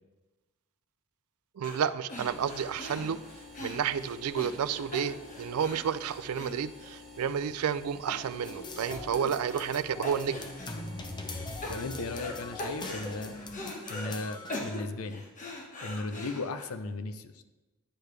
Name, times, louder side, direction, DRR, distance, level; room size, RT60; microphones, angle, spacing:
sound 1, 1.6-1.8 2.1-7.3 7.6-7.7 8.1-8.6 8.9-9.8 10.0-10.8 11.2-12.3 12.6-14.1 14.5-16.6, left 2 dB, 35° left, 1.3 m, -41 dB
voice 1, 1.6-3.2 3.6-10.5, right 7 dB, 85° right, 15 dB, 0.4 m, -31 dB
sound 2, 2.1-13.4, left 3 dB, ahead, 3.2 m, -50 dB
sound 3, 8.4-14.6, left 2 dB, 20° left, 0.7 m, -42 dB
voice 2, 11.7-13.4 13.9-15.2 15.8-17.4, left 3 dB, 85° left, 10 dB, 0.6 m, -36 dB
10.0 x 6.6 x 3.3 m, 1.1 s
head